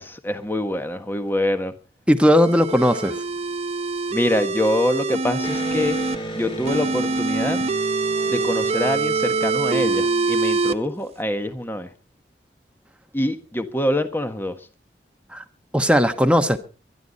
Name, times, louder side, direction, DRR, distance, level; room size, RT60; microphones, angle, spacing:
voice 1, 0.0-1.7 4.1-6.0 6.3-7.7 8.3-11.9 13.1-14.6, left 1 dB, 10° left, 1.5 m, -25 dB
voice 2, 2.1-3.2 15.3-15.4 15.7-16.6, equal, 5° right, 1.2 m, -17 dB
sound 1, 2.2-6.2 6.7-10.7, right 3 dB, 35° right, 0.8 m, -24 dB
Electric guitar, 5.4-10.9, right 2 dB, 30° left, 3.0 m, -34 dB
23.0 x 11.5 x 4.1 m
head